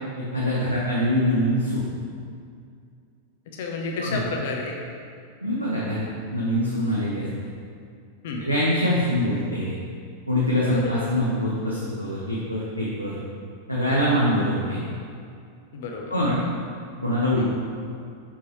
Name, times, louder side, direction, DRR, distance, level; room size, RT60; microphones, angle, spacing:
voice 1, 0.2-1.9 4.0-4.2 5.4-6.0 6.3-7.2 8.4-9.7 10.3-13.2 13.7-14.8 16.1-16.4 17.0-17.5, equal, 90° left, -7 dB, 0.9 m, -24 dB
voice 2, 3.5-4.8 8.2-8.5 10.7-11.0 15.7-16.1 17.4-17.5, left 3 dB, 55° left, 1 dB, 0.8 m, -31 dB
6.2 x 5.7 x 3.2 m, 2.3 s
figure-of-eight pair, 90°, 0 cm